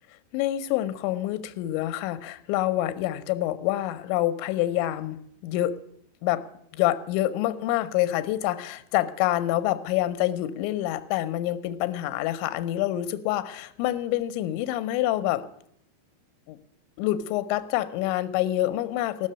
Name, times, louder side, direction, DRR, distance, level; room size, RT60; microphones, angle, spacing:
voice 1, 0.3-5.8 6.2-6.4 6.7-15.5 16.5-16.6 17.0-19.3, left 14 dB, 80° left, 12 dB, 3.0 m, -27 dB
16.0 x 6.6 x 9.8 m, 0.71 s
omnidirectional pair, 5.3 m